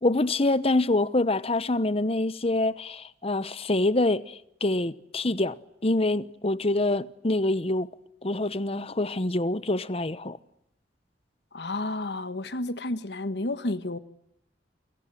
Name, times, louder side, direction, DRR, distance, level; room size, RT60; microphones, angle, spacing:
voice 1, 0.0-5.6 5.8-7.9 8.2-10.4, left 2 dB, 35° left, 1.0 m, -26 dB
voice 2, 11.5-14.0, left 2 dB, 70° left, 1.5 m, -31 dB
28.5 x 26.0 x 7.7 m
head